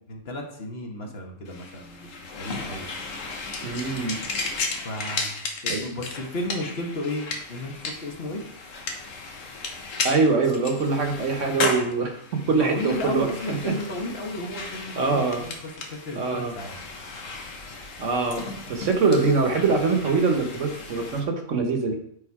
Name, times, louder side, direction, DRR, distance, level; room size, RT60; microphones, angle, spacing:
voice 1, 0.1-2.9 4.8-5.4 5.6-8.4 12.4-16.8, left 1 dB, 50° left, 2 dB, 1.3 m, -33 dB
sound 1, 1.4-21.2, left 3 dB, 70° left, 1.3 m, -35 dB
voice 2, 3.6-4.2 5.7-5.8 10.0-13.7 14.9-15.4 16.1-16.5 18.0-21.9, right 4 dB, 65° right, 5 dB, 1.3 m, -24 dB
7.1 x 4.1 x 4.6 m, 0.69 s
omnidirectional pair, 1.4 m